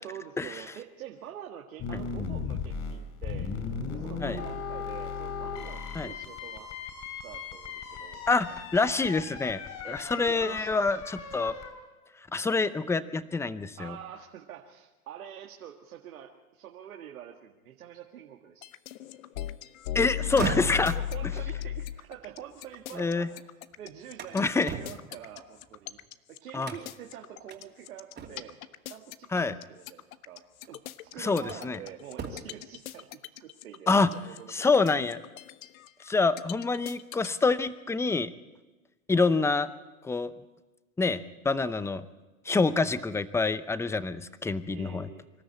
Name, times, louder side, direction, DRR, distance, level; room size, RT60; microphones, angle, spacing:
voice 1, 0.0-3.5 3.9-6.7 7.2-8.2 9.8-10.8 13.8-18.7 20.8-23.3 23.8-26.0 26.3-28.6 28.9-34.7 44.7-45.2, right 10 dB, 80° right, 2 dB, 1.9 m, -46 dB
sound 1, 1.8-11.7, left 5 dB, 40° left, 5.6 m, -37 dB
voice 2, 8.3-9.6 9.9-11.5 12.3-14.0 19.9-20.9 23.0-23.3 24.3-24.7 26.5-26.7 29.3-29.6 31.2-31.8 33.9-34.1 34.5-35.2 36.1-38.3 39.1-39.7 40.0-40.3 41.0-42.0 42.5-45.1, left 4 dB, 5° left, 14 dB, 0.6 m, -26 dB
sound 2, 18.6-37.3, left 11 dB, 70° left, 1.0 m, -37 dB
sound 3, 20.1-23.3 23.7-26.1 26.6-27.1 27.5-27.6 28.2-28.7 29.9-30.0 30.6-31.8 32.1-32.7, right 5 dB, 25° right, 2.8 m, -40 dB
25.5 x 13.0 x 8.4 m, 1.2 s
hypercardioid pair, 120°, 42 cm